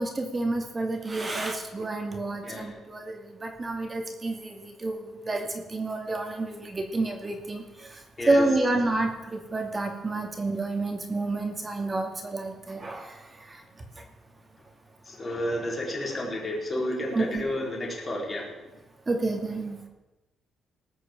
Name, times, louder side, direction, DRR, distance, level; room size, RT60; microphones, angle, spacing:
voice 1, 0.0-8.0 8.3-13.6 17.1-17.4 19.1-19.8, right 2 dB, 25° right, 4 dB, 2.4 m, -29 dB
voice 2, 2.4-2.8 8.2-8.4 15.0-18.6, left 1 dB, 30° left, -2 dB, 4.6 m, -31 dB
19.0 x 6.6 x 7.4 m, 1.1 s
cardioid pair, 90°, 0 cm